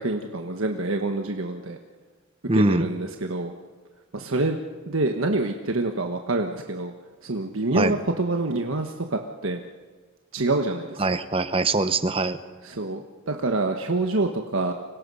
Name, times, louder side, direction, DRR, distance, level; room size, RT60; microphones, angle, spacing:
voice 1, 0.0-1.8 2.5-3.5 4.1-4.6 4.9-6.9 7.2-9.6 10.3-11.0 12.6-14.7, right 2 dB, 75° right, 4 dB, 1.4 m, -26 dB
voice 2, 2.5-2.9 7.7-8.0 11.0-12.4, right 2 dB, 25° right, 11 dB, 1.1 m, -22 dB
30.0 x 25.5 x 5.6 m, 1.4 s
head